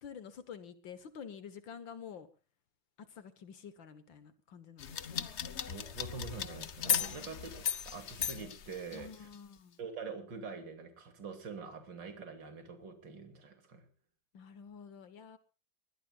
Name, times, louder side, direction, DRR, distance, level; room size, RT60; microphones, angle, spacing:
voice 1, 0.0-2.3 3.0-5.3 7.0-7.7 8.9-9.8 14.3-15.4, left 7 dB, 75° left, 11 dB, 2.1 m, -49 dB
sound 1, 4.8-9.3, left 8 dB, 45° left, 1.0 m, -36 dB
voice 2, 5.7-9.3 9.8-13.9, right 5 dB, 70° right, 6 dB, 3.4 m, -45 dB
23.0 x 20.5 x 2.4 m, 0.35 s
omnidirectional pair, 2.1 m